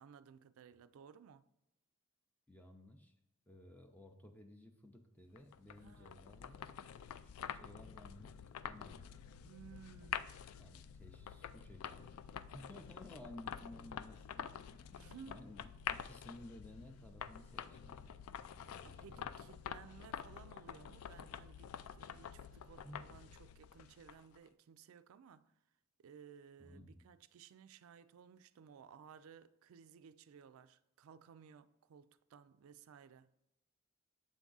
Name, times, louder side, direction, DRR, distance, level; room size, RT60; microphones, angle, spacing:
voice 1, 0.0-1.4 5.8-6.3 9.4-10.4 14.9-15.5 18.8-25.6 26.0-33.3, right 7 dB, 70° right, 0.3 m, -58 dB
voice 2, 2.5-3.1 3.5-6.6 7.2-8.3 8.6-9.2 10.6-12.2 12.5-14.5 15.3-19.4 22.8-23.2 26.6-27.0, left 1 dB, 10° left, 0.5 m, -56 dB
sound 1, 5.4-24.4, left 8 dB, 80° left, 0.3 m, -48 dB
7.6 x 3.6 x 3.9 m
head